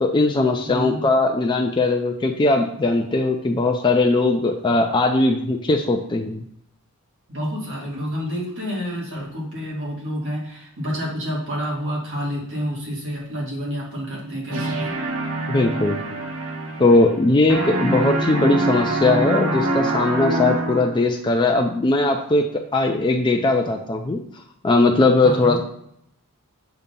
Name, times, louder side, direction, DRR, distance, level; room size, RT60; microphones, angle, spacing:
voice 1, 0.0-6.4 15.5-16.0 16.8-24.2 24.6-25.6, left 2 dB, 20° left, 2 dB, 0.4 m, -19 dB
voice 2, 0.6-1.0 7.3-14.9 25.2-25.6, equal, 55° right, -5 dB, 2.3 m, -29 dB
sound 1, 14.5-17.2 17.5-21.1, right 2 dB, 80° right, 1.2 m, -25 dB
6.8 x 2.8 x 5.2 m, 0.73 s
head